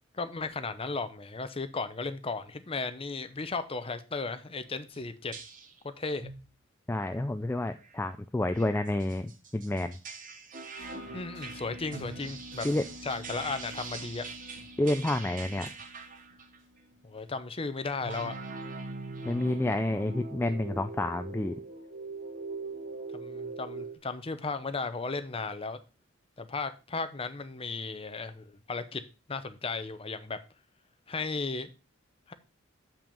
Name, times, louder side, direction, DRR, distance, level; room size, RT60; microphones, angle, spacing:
voice 1, 0.1-5.3 5.8-6.3 11.1-12.7 13.0-14.3 17.0-18.4 23.1-25.8 26.4-29.0 29.3-30.4 31.1-31.7 32.3-32.4, left 4 dB, 30° left, 0.7 m, -35 dB
sound 1, 4.9-5.0 5.3-5.8 6.2-6.5 7.0-7.2 7.6-7.9 8.5-16.6 18.0-24.0, right 3 dB, 40° right, 1.2 m, -42 dB
voice 2, 6.9-10.0 12.6-12.8 14.8-15.7 19.2-21.5, left 1 dB, 10° left, 0.3 m, -29 dB
sound 2, 10.8-17.3, equal, 60° right, 4.4 m, -49 dB
7.1 x 6.0 x 5.2 m
head